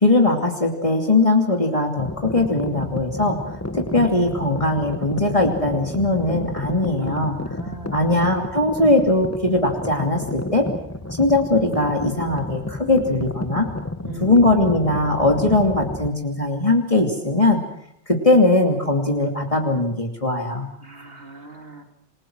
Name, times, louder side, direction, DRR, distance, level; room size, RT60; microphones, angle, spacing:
voice 1, 0.0-3.4 3.7-7.4 7.9-10.7 11.2-13.7 14.2-17.6 18.1-20.7, left 2 dB, 30° left, 2 dB, 2.8 m, -20 dB
sound 1, 2.0-16.1, left 1 dB, 15° left, 1.2 m, -31 dB
voice 2, 6.9-8.0 14.0-14.4 20.8-21.8, right 3 dB, 60° right, 4 dB, 3.5 m, -39 dB
28.0 x 21.5 x 6.3 m, 0.72 s
omnidirectional pair, 1.2 m